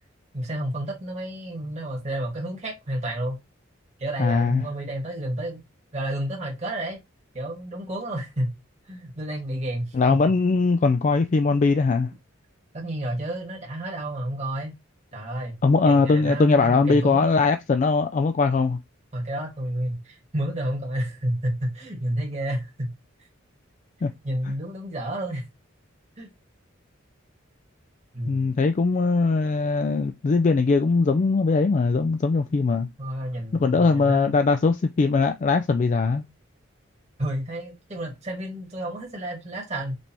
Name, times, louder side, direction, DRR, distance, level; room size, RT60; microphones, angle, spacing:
voice 1, 0.3-3.4 4.0-5.6 5.9-7.0 7.3-8.5 8.9-9.9 12.7-14.7 15.1-15.6 15.8-17.3 19.1-22.9 24.2-25.5 26.2-26.3 28.1-28.5 33.0-34.3 37.2-39.9, right 1 dB, 35° right, 1.5 m, -30 dB
voice 2, 4.2-4.6 9.9-12.1 15.6-18.8 24.0-24.1 28.3-32.9 33.6-36.2, left 4 dB, 40° left, 0.3 m, -21 dB
5.1 x 3.3 x 2.8 m
head